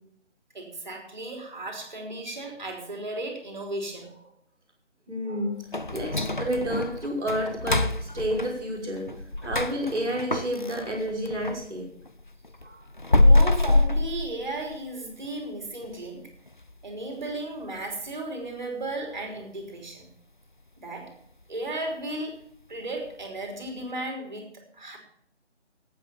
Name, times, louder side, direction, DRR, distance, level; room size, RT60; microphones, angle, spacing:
voice 1, 0.5-4.1 13.2-16.3 16.8-20.1 20.8-21.1 21.5-22.4 22.7-25.0, right 2 dB, 40° right, 2 dB, 3.5 m, -35 dB
voice 2, 5.1-5.6 5.9-9.1 9.4-11.9 12.6-12.7, equal, 5° right, -18 dB, 1.4 m, -30 dB
sound 1, 5.7-11.7 12.0-14.9 15.2-15.3 15.8-15.9 16.5-16.8 17.1-17.2 17.8-17.9, left 2 dB, 45° left, 0.4 m, -25 dB
12.0 x 8.7 x 7.0 m, 0.66 s
figure-of-eight pair, 175°, 35 cm